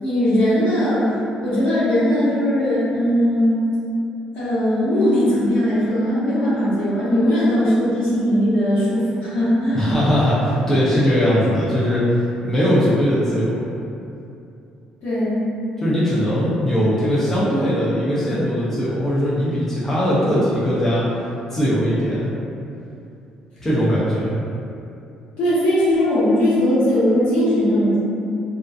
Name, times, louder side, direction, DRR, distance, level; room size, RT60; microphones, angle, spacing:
voice 1, 0.0-3.6 4.3-9.9 15.0-15.4 25.4-28.0, equal, 70° left, -11 dB, 1.0 m, -19 dB
voice 2, 9.7-12.0 12.4-13.6 15.8-21.0 21.5-22.3 23.6-24.3, equal, 15° left, -10 dB, 0.4 m, -20 dB
2.4 x 2.3 x 2.4 m, 2.6 s
cardioid pair, 180°, 2 cm